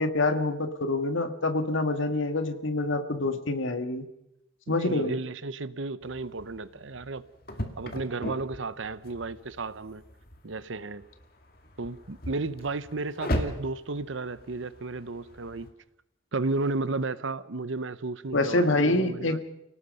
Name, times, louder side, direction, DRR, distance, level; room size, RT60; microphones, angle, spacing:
voice 1, 0.0-4.0 4.7-5.1 18.3-19.4, left 2 dB, 75° left, 1.9 m, -26 dB
voice 2, 4.7-7.2 7.8-10.0 10.4-11.1 11.8-15.7 16.3-19.4, right 3 dB, 75° right, 0.8 m, -33 dB
sound 1, 6.0-15.7, equal, 45° left, 2.3 m, -38 dB
29.5 x 18.5 x 5.5 m
head